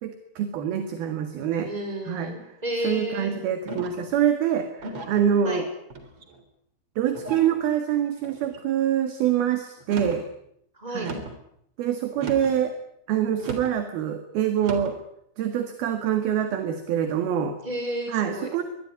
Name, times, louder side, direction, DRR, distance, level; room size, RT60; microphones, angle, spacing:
voice 1, 0.0-1.7 2.1-2.3 2.8-5.7 7.0-10.2 10.9-11.3 11.8-12.7 13.1-15.0 15.4-17.6 18.1-18.6, right 9 dB, 60° right, 8 dB, 3.4 m, -25 dB
voice 2, 1.6-3.3 5.4-5.6 10.8-11.1 17.6-18.6, equal, 10° right, 5 dB, 5.4 m, -32 dB
sound 1, 3.7-4.1 4.8-5.3 5.9-6.4 7.1-7.6 8.2-8.6 9.8-10.3 11.0-11.4 12.1-12.6 13.4-13.8 14.6-15.0, right 2 dB, 30° right, 3.6 m, -37 dB
23.5 x 21.0 x 9.7 m, 0.75 s
omnidirectional pair, 5.6 m